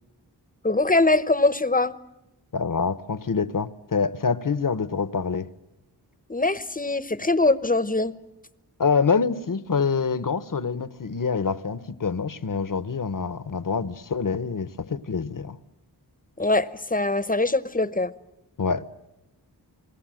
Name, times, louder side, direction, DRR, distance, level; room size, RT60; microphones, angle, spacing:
voice 1, 0.6-2.0 6.3-8.1 16.4-18.1, left 2 dB, 20° left, 0.9 m, -22 dB
voice 2, 2.5-5.5 8.8-15.6 18.6-18.9, left 5 dB, 50° left, 1.0 m, -26 dB
29.0 x 20.5 x 7.7 m
wide cardioid pair, 60°, 41 cm